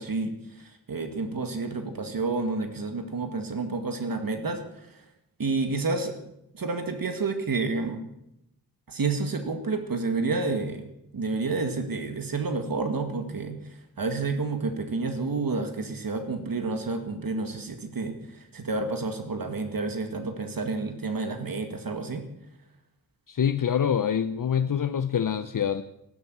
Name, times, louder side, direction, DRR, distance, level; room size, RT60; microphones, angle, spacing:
voice 1, 0.0-5.0 5.4-6.2 6.5-8.0 8.9-13.6 14.0-22.2, right 3 dB, 70° right, 7 dB, 2.1 m, -30 dB
voice 2, 23.3-25.8, left 8 dB, 65° left, 11 dB, 0.7 m, -25 dB
14.5 x 12.0 x 8.0 m, 0.82 s
wide cardioid pair, 100°, 36 cm